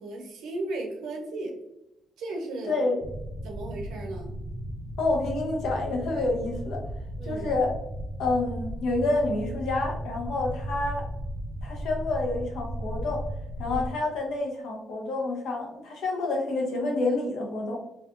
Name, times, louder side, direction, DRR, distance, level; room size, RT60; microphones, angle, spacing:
voice 1, 0.0-1.5 2.2-2.8 3.4-4.3 7.2-7.4 13.6-13.8, right 2 dB, 85° right, 1 dB, 0.7 m, -35 dB
voice 2, 2.7-3.0 5.0-6.8 7.2-7.8 8.2-11.1 11.6-13.3 13.6-17.8, left 2 dB, 75° left, 0 dB, 0.7 m, -28 dB
sound 1, 3.0-13.9, equal, 45° right, 0.5 m, -35 dB
2.6 x 2.3 x 2.5 m, 0.89 s
cardioid pair, 90°, 0 cm